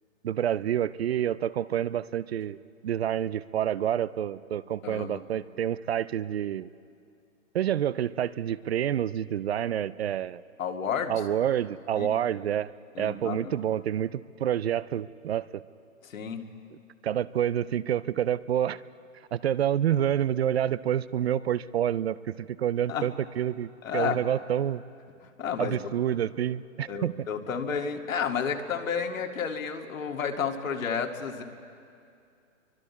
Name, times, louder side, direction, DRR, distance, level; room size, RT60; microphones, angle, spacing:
voice 1, 0.2-2.6 2.8-6.7 7.5-10.4 11.1-12.7 13.0-15.6 17.0-18.8 19.3-24.8 25.6-27.1, right 10 dB, 50° right, 18 dB, 0.5 m, -28 dB
voice 2, 4.8-5.2 10.6-11.1 12.0-12.1 13.0-13.4 16.0-16.4 22.9-23.1 23.8-24.2 25.4-25.8 26.9-31.4, left 6 dB, 75° left, 3 dB, 2.3 m, -31 dB
29.5 x 24.0 x 4.2 m, 2.4 s
hypercardioid pair, 155°, 40 cm